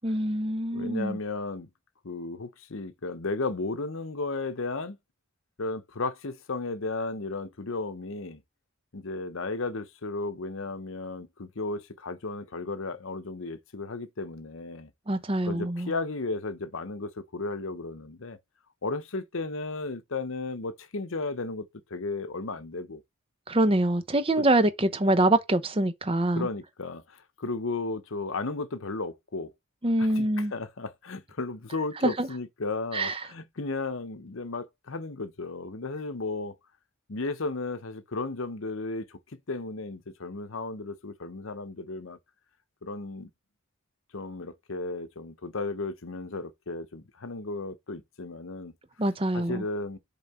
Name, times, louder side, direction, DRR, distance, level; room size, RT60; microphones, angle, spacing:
voice 1, 0.0-1.2 15.1-15.9 23.5-26.5 29.8-30.5 32.0-32.3 32.9-33.2 49.0-49.6, right 1 dB, 25° right, 0.8 m, -25 dB
voice 2, 0.7-1.7 2.0-5.0 5.6-8.4 8.9-14.9 15.4-18.4 18.8-21.6 21.9-23.0 24.4-24.5 26.3-29.5 30.0-36.6 37.1-42.2 42.8-43.3 44.1-48.7 49.3-50.0, left 3 dB, 65° left, 0.9 m, -34 dB
7.2 x 3.8 x 4.3 m
head